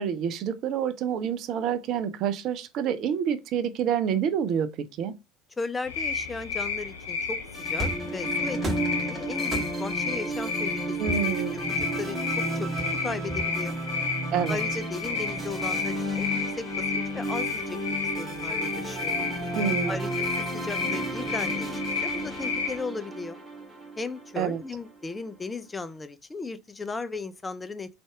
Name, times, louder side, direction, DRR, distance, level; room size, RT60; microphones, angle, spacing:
voice 1, 0.0-5.1 11.0-11.6 14.3-14.6 19.5-20.0 24.4-24.6, right 8 dB, 50° right, 0.5 m, -28 dB
voice 2, 5.6-8.6 9.0-11.0 11.5-12.8 13.0-13.8 14.5-19.2 19.9-23.4 24.0-27.9, left 3 dB, 15° left, 0.4 m, -36 dB
sound 1, 5.9-22.8, left 5 dB, 70° left, 0.8 m, -32 dB
sound 2, 7.5-24.9, right 1 dB, 5° right, 2.0 m, -33 dB
sound 3, 7.8-8.1 8.6-9.0 9.5-10.0 11.1-12.2 12.8-13.8, right 1 dB, 30° right, 1.3 m, -34 dB
4.0 x 3.4 x 3.4 m
figure-of-eight pair, 65°, 0 cm